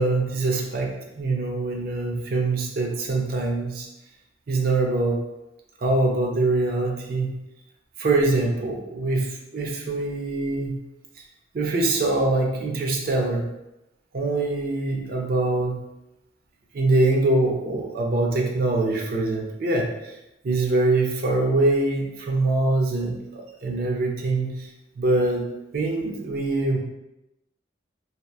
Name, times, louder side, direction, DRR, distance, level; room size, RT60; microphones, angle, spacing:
voice 1, 0.0-3.9 4.5-5.2 5.8-7.3 8.0-10.8 11.5-13.5 14.1-15.8 16.7-20.1 20.4-24.7 25.0-26.8, right 2 dB, 50° right, 0 dB, 0.4 m, -24 dB
2.8 x 2.1 x 2.3 m, 0.93 s
head